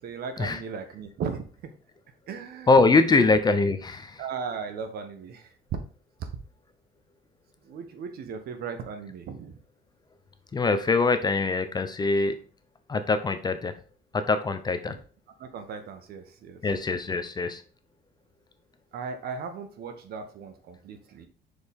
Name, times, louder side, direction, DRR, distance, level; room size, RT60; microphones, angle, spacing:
voice 1, 0.0-1.7 2.3-2.7 3.1-3.2 4.2-5.5 6.2-6.3 7.6-9.6 14.9-15.0 15.4-16.6 18.9-21.3, right 6 dB, 65° right, 8 dB, 1.1 m, -37 dB
voice 2, 2.7-4.2 10.5-12.4 12.9-13.7 14.1-15.0 16.6-17.6, left 3 dB, 25° left, 10 dB, 0.7 m, -23 dB
6.2 x 4.9 x 3.6 m, 0.40 s
cardioid pair, 110°, 17 cm